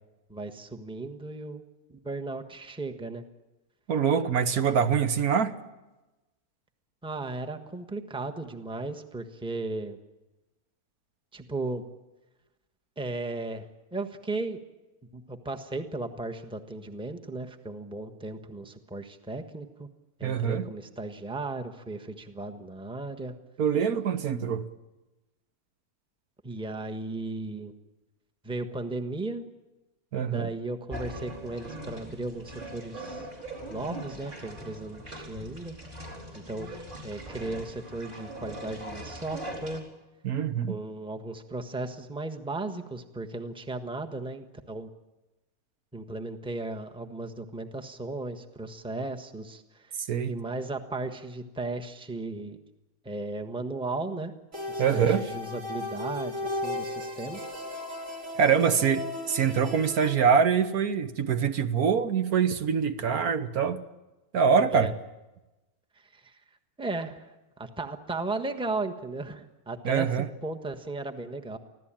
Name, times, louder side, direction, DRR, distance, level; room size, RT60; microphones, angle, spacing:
voice 1, 0.3-1.6 1.9-3.2 7.0-10.0 11.3-11.8 13.0-14.6 15.1-19.9 20.2-23.3 26.4-27.7 28.4-29.4 30.2-33.3 33.7-35.7 36.3-39.8 40.7-44.9 45.9-50.0 50.3-52.6 53.0-54.3 54.7-57.4 64.6-64.9 66.0-66.4 66.8-67.3 67.6-71.6, right 2 dB, 5° right, 5 dB, 1.2 m, -36 dB
voice 2, 3.9-5.5 20.2-20.7 23.6-24.7 30.1-30.5 40.2-40.8 50.1-50.3 54.8-55.2 58.4-63.8 64.3-64.9 69.8-70.3, right 7 dB, 70° right, 10 dB, 1.6 m, -24 dB
sound 1, 30.9-39.8, right 1 dB, 30° right, 4.8 m, -41 dB
sound 2, 54.5-60.2, left 1 dB, 50° right, 3.9 m, -36 dB
25.0 x 16.0 x 9.0 m, 1.1 s
omnidirectional pair, 1.7 m